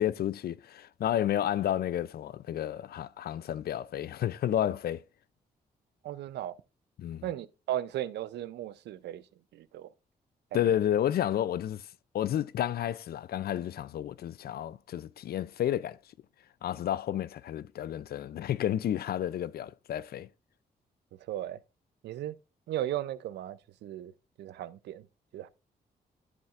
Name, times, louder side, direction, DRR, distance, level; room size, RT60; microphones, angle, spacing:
voice 1, 0.0-5.0 7.0-7.3 10.5-11.9 12.1-16.0 16.6-20.3, left 11 dB, 65° left, 0.4 m, -31 dB
voice 2, 6.0-6.5 7.2-9.2 9.5-9.9 10.5-10.8 21.3-21.6 22.0-22.4 22.7-24.1 24.4-25.1 25.3-25.5, right 12 dB, 85° right, 0.5 m, -36 dB
11.0 x 7.1 x 2.4 m
supercardioid pair, 55°, 17 cm